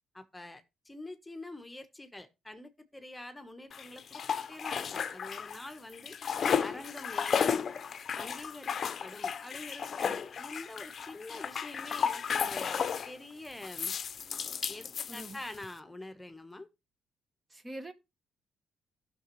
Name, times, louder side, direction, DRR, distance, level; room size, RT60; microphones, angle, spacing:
voice 1, 0.1-6.2 6.6-7.7 8.2-13.9 14.7-16.7, left 2 dB, 10° left, 1.1 m, -46 dB
sound 1, 3.7-5.7 5.9-13.1 13.6-15.7, left 7 dB, 50° left, 0.6 m, -33 dB
voice 2, 15.1-15.4 17.5-17.9, right 1 dB, 25° right, 1.1 m, -44 dB
14.5 x 6.0 x 3.1 m
cardioid pair, 90°, 0 cm